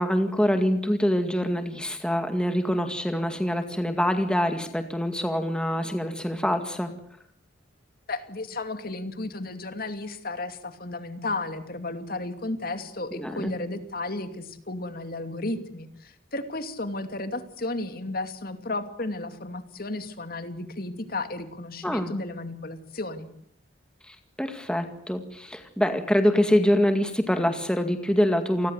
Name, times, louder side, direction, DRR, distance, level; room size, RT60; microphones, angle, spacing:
voice 1, 0.0-6.9 13.1-13.5 21.8-22.1 24.1-28.7, equal, 5° left, 7 dB, 2.0 m, -25 dB
voice 2, 8.1-23.3, left 2 dB, 50° left, 9 dB, 2.6 m, -33 dB
28.5 x 20.5 x 8.1 m, 0.67 s
head